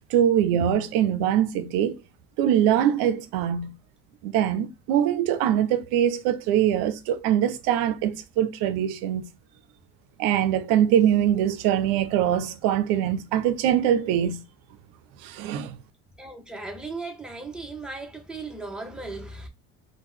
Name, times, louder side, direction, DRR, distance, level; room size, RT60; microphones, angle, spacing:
voice 1, 0.1-2.0 2.4-3.7 4.2-9.2 10.2-14.4 15.2-15.8, right 10 dB, 75° right, 0.6 m, -23 dB
voice 2, 16.2-19.5, right 3 dB, ahead, 0.9 m, -37 dB
2.9 x 2.2 x 3.7 m
supercardioid pair, 85°, 34 cm